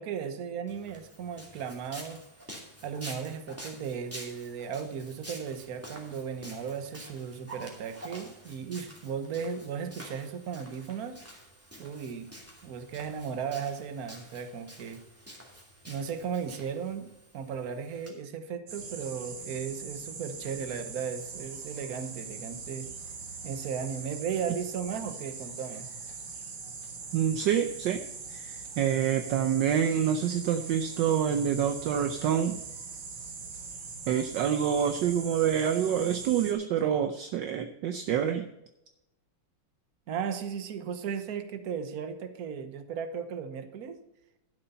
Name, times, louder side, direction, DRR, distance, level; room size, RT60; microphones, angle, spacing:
voice 1, 0.0-2.2 2.8-11.2 11.8-12.3 12.6-15.0 15.9-17.1 17.3-22.9 23.4-25.9 40.1-44.0, right 7 dB, 50° right, 9 dB, 1.3 m, -36 dB
Walk footsteps, 0.7-18.1, equal, 5° right, 2.4 m, -48 dB
sound 1, 18.7-36.5, right 4 dB, 85° right, 2.7 m, -42 dB
voice 2, 27.1-28.0 28.3-32.6 34.1-38.4, right 8 dB, 70° right, 8 dB, 1.2 m, -27 dB
12.0 x 7.0 x 5.5 m, 0.90 s
omnidirectional pair, 2.3 m